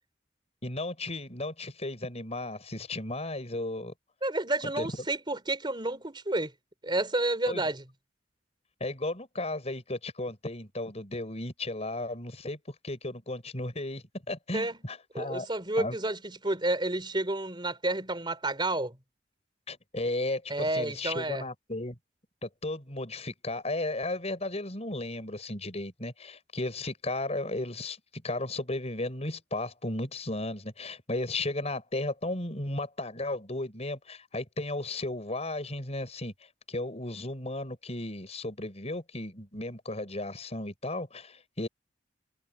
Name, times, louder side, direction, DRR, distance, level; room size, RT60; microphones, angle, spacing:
voice 1, 0.6-3.9 4.8-4.9 7.5-7.6 8.8-12.6 12.8-15.5 15.8-16.0 19.7-22.0 22.4-28.0 28.2-36.3 36.7-41.7, left 2 dB, 35° left, 6.2 m, -34 dB
voice 2, 4.2-6.5 6.8-7.8 14.5-14.8 15.1-19.0 20.5-21.5, right 2 dB, 25° right, 4.3 m, -30 dB
head